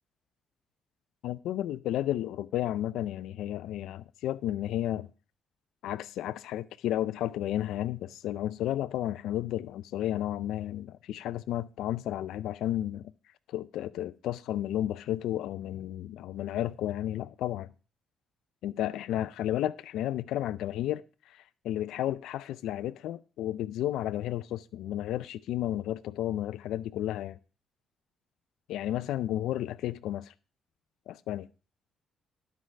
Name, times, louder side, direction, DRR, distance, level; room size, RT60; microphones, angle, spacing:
voice 1, 1.2-5.1 5.8-13.1 13.5-17.7 18.6-27.4 28.7-30.3 31.1-31.5, left 12 dB, 85° left, 0.4 m, -32 dB
11.5 x 4.6 x 6.3 m
cardioid pair, 90°, 0 cm